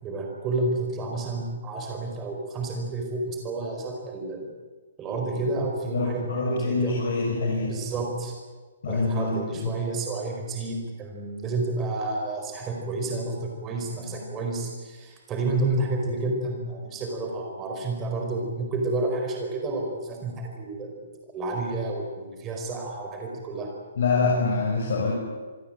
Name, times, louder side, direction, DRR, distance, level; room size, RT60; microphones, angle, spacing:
voice 1, 0.0-4.5 5.0-7.0 7.7-8.3 8.9-21.0 21.3-23.7, right 2 dB, 10° right, 2 dB, 4.6 m, -30 dB
voice 2, 5.9-7.8 8.8-9.7 13.7-13.8 14.2-14.3 24.0-25.1, left 3 dB, 55° left, -2 dB, 6.8 m, -25 dB
27.0 x 20.5 x 8.7 m, 1.4 s
hypercardioid pair, 180°, 0 cm